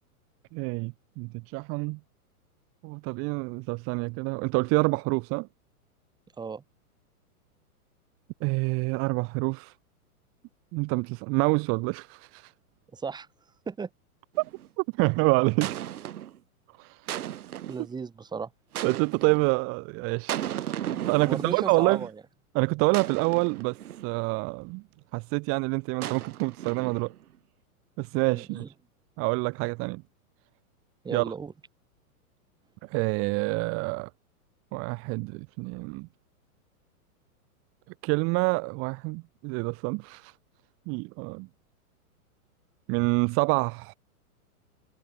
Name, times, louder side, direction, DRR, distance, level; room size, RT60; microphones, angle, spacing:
voice 1, 0.5-2.0 2.8-5.5 8.4-9.7 10.7-12.5 14.8-15.8 16.8-17.0 18.8-20.4 20.9-22.1 22.5-24.8 25.1-27.1 28.0-28.6 29.2-30.0 31.1-31.3 32.8-34.1 34.7-36.1 38.0-40.3 40.9-41.5 42.9-43.9, right 29 dB, 30° right, 2.0 m, -27 dB
voice 2, 12.9-13.3 13.7-13.9 17.7-18.5 21.2-22.1 28.2-28.7 31.0-31.5, right 5 dB, 10° right, 3.6 m, -35 dB
sound 1, 14.3-14.7 15.6-16.4 17.1-17.9 18.7-19.5 20.3-21.9 22.9-24.2 26.0-27.2, right 11 dB, 70° right, 2.4 m, -36 dB
hypercardioid pair, 155°, 45 cm